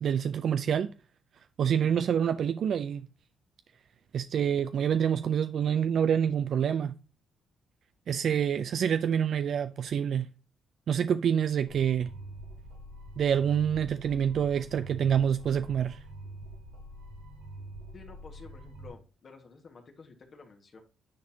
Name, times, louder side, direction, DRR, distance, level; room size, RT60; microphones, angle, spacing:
voice 1, 0.0-0.9 1.6-3.1 4.1-6.9 8.1-10.3 10.9-12.1 13.2-16.0, right 8 dB, 60° right, 0.3 m, -27 dB
sound 1, 11.7-18.9, right 1 dB, 85° right, 2.1 m, -45 dB
voice 2, 17.9-20.8, left 4 dB, 45° left, 1.5 m, -51 dB
9.6 x 4.1 x 2.7 m
cardioid pair, 90°, 0 cm